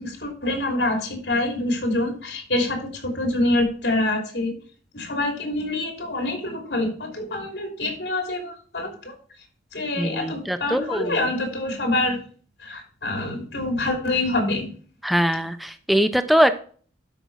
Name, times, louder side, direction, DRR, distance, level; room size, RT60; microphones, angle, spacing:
voice 1, 0.0-4.5 4.9-9.2 9.7-12.2 12.6-14.7, left 2 dB, 85° left, 3 dB, 3.1 m, -26 dB
voice 2, 10.0-11.2 15.0-16.6, equal, ahead, 9 dB, 0.7 m, -22 dB
12.0 x 5.3 x 4.7 m, 0.43 s
head